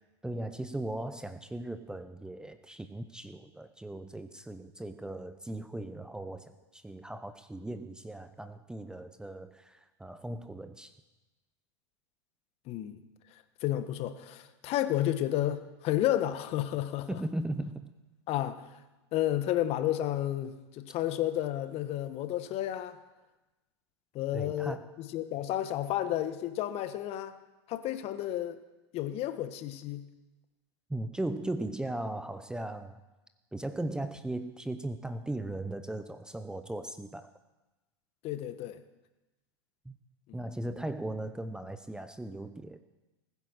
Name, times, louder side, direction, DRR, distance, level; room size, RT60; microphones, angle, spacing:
voice 1, 0.2-10.9 17.1-17.9 24.3-24.9 30.9-33.0 33.5-37.3 39.8-40.0 40.3-42.8, right 1 dB, 5° right, 10 dB, 0.7 m, -38 dB
voice 2, 12.7-13.0 13.6-17.2 18.3-18.7 19.1-23.0 24.1-27.4 27.7-28.6 28.9-30.1 38.2-38.8, left 12 dB, 45° left, 11 dB, 1.3 m, -31 dB
19.5 x 9.8 x 6.5 m, 1.1 s
hypercardioid pair, 100°, 15 cm